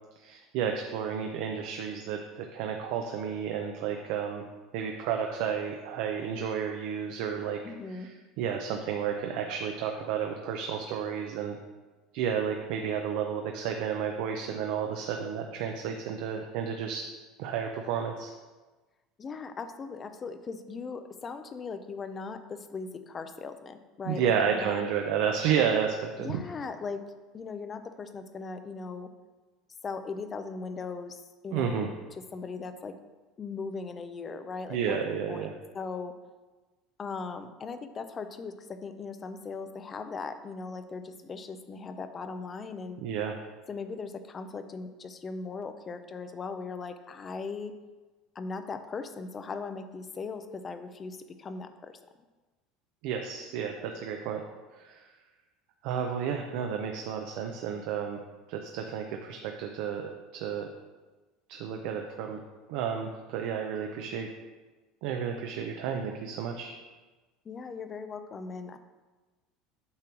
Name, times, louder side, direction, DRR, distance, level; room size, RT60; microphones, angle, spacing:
voice 1, 0.2-4.4 4.7-7.6 7.9-11.6 12.1-17.0 17.4-18.3 24.0-26.4 31.5-31.9 34.7-35.5 43.0-43.3 53.0-54.4 54.8-55.0 55.8-58.2 58.5-60.7 61.5-62.4 62.7-64.3 65.0-66.7, right 7 dB, 60° right, 3 dB, 0.6 m, -31 dB
voice 2, 7.6-8.1 19.2-24.8 26.2-29.1 29.8-31.9 32.3-33.0 33.4-35.0 35.3-36.2 37.0-43.0 43.7-47.8 48.4-52.0 67.5-68.8, left 4 dB, 20° left, 10 dB, 0.4 m, -39 dB
8.5 x 3.1 x 6.0 m, 1.2 s
cardioid pair, 165°, 0 cm